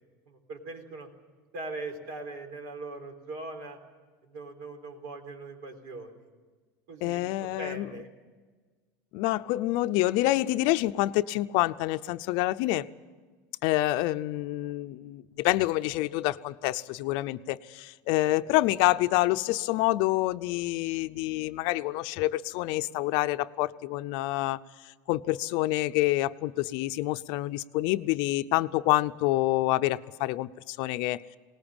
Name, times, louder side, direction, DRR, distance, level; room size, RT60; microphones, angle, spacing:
voice 1, 0.3-1.1 1.5-3.8 4.2-6.3 6.9-8.1 18.2-18.4, right 2 dB, 65° right, 3.9 m, -41 dB
voice 2, 7.0-7.9 9.1-12.9 13.6-24.6 25.1-31.2, left 17 dB, 60° left, 0.6 m, -27 dB
20.0 x 19.0 x 8.9 m
cardioid pair, 150°, 9 cm